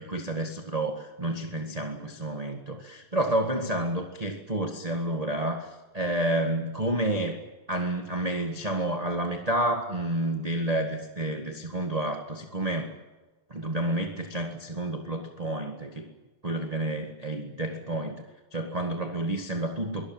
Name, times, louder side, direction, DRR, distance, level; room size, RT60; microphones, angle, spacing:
voice 1, 0.0-7.4 7.7-12.9 13.5-16.1 16.4-18.2 18.5-20.1, right 1 dB, 20° right, 3 dB, 1.1 m, -30 dB
23.5 x 18.0 x 8.8 m, 1.2 s
omnidirectional pair, 3.5 m